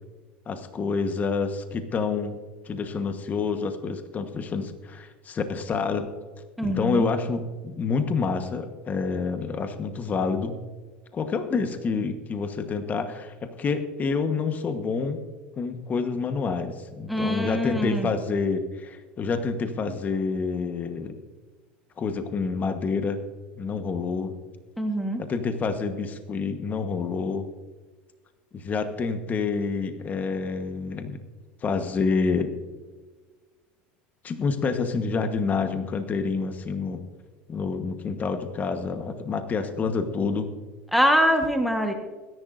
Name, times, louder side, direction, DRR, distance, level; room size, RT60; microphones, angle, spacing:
voice 1, 0.5-2.4 2.6-6.1 6.6-10.6 11.1-15.2 15.6-21.2 22.0-23.2 23.6-24.4 25.2-27.4 28.5-31.2 31.6-32.5 34.2-37.0 37.5-40.5, left 4 dB, 30° left, 8 dB, 1.2 m, -28 dB
voice 2, 6.6-7.0 17.1-18.1 24.8-25.2 40.9-41.9, equal, ahead, 4 dB, 1.3 m, -23 dB
22.0 x 11.0 x 2.6 m, 1.3 s
supercardioid pair, 110°, 5 cm